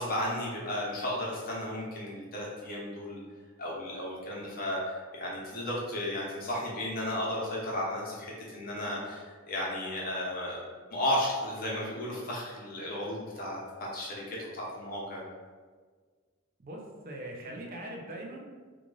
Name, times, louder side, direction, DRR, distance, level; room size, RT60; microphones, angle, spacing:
voice 1, 0.0-3.2 3.6-10.6 10.9-15.3, left 1 dB, 45° left, -4 dB, 0.9 m, -34 dB
voice 2, 16.6-18.5, right 1 dB, 45° right, -1 dB, 0.5 m, -41 dB
3.1 x 2.4 x 3.9 m, 1.5 s
head